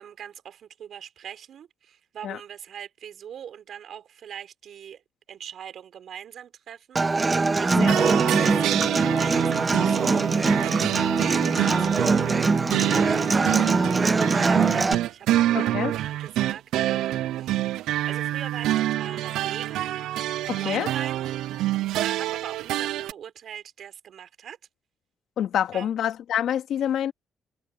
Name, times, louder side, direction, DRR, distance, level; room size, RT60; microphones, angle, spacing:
voice 1, 0.0-5.0 5.3-20.0 20.5-21.4 22.0-24.6 25.7-25.9, right 9 dB, 65° right, 3.7 m, -42 dB
Human voice / Acoustic guitar, 7.0-14.9, right 3 dB, 25° right, 1.0 m, -23 dB
sound 1, 7.9-23.1, right 14 dB, 85° right, 0.4 m, -26 dB
voice 2, 15.5-15.9 20.5-20.9 25.4-27.1, left 10 dB, 75° left, 2.4 m, -27 dB
cardioid pair, 90°, 0 cm